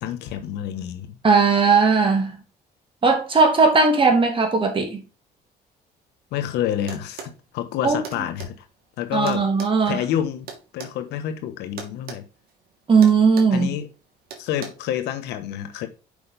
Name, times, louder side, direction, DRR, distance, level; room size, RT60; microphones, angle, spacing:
voice 1, 0.0-1.2 6.3-8.6 9.0-9.5 9.9-12.2 13.5-13.9 14.4-15.9, left 10 dB, 85° left, 1.3 m, -28 dB
voice 2, 1.2-2.4 3.0-5.0 7.8-8.0 9.1-10.0 12.9-13.7, right 4 dB, 30° right, 2.9 m, -18 dB
sound 1, 6.9-7.4 8.0-8.5 9.3-11.0 11.8-12.2 12.5-12.7 13.0-13.6 14.3-14.7, right 6 dB, 65° right, 2.7 m, -38 dB
6.9 x 5.5 x 5.1 m
cardioid pair, 110°, 17 cm